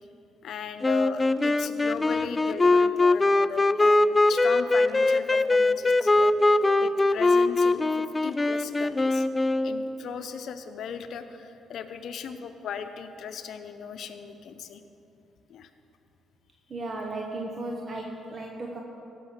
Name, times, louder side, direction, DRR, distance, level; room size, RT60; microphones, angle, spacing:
voice 1, 0.4-9.3 9.6-14.8 15.5-15.7, left 6 dB, 70° left, 8 dB, 0.7 m, -37 dB
sound 1, 0.8-10.0, left 2 dB, 20° left, 0.3 m, -22 dB
voice 2, 16.7-18.8, right 2 dB, 45° right, 1 dB, 1.1 m, -35 dB
15.5 x 6.2 x 6.6 m, 3.0 s
cardioid pair, 90°, 0 cm